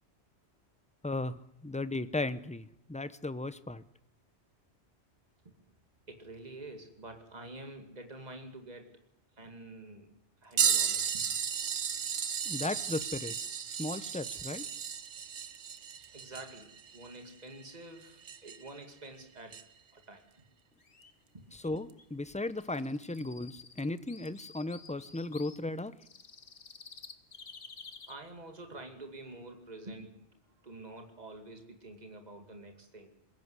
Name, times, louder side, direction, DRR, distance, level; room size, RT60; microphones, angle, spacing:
voice 1, 1.0-3.8 12.5-13.4 13.7-14.6 21.5-25.9, left 2 dB, 5° left, 14 dB, 0.7 m, -36 dB
voice 2, 6.1-9.0 9.4-10.1 10.4-11.2 16.1-19.6 19.9-20.4 21.3-21.5 28.1-30.3 30.6-33.1, right 2 dB, 35° right, 5 dB, 2.5 m, -48 dB
sound 1, 10.6-18.8 19.5-19.6 21.9-22.0 23.0-23.2 24.3-24.4, right 7 dB, 85° right, 1.4 m, -34 dB
sound 2, 20.8-21.1 21.6-21.7 22.0-22.1 22.5-25.6 26.0-28.1, left 5 dB, 65° left, 1.7 m, -51 dB
21.5 x 16.5 x 9.7 m, 0.77 s
omnidirectional pair, 1.2 m